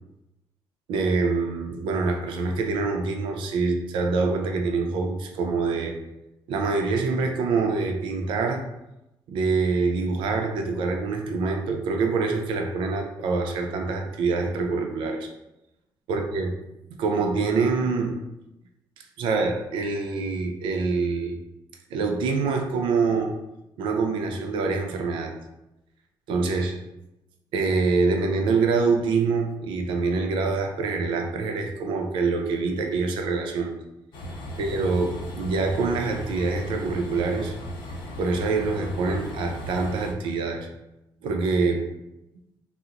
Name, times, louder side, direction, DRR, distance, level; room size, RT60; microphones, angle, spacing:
voice 1, 0.9-5.9 6.5-8.6 9.3-15.3 16.1-16.5 17.0-18.1 19.2-21.4 21.9-23.4 23.8-25.3 26.3-26.8 27.5-33.7 34.6-37.5 38.2-40.7 41.2-41.8, right 4 dB, 90° right, 3 dB, 0.5 m, -25 dB
Train, 34.1-40.1, equal, 75° left, 0.6 m, -36 dB
2.8 x 2.0 x 3.7 m, 0.93 s
cardioid pair, 120°, 8 cm